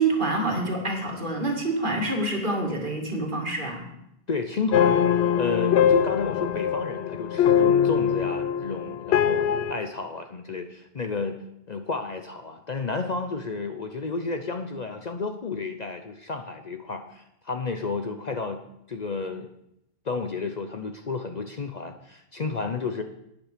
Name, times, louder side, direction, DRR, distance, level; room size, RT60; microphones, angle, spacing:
voice 1, 0.0-3.9, right 2 dB, 50° right, 0 dB, 2.4 m, -26 dB
voice 2, 4.3-5.1 5.4-11.4 11.7-18.6 18.9-19.5 20.0-23.0, left 4 dB, 45° left, 6 dB, 0.7 m, -31 dB
sound 1, 4.7-9.7, left 8 dB, 85° left, 0.9 m, -22 dB
11.5 x 9.1 x 5.0 m, 0.81 s
omnidirectional pair, 1.1 m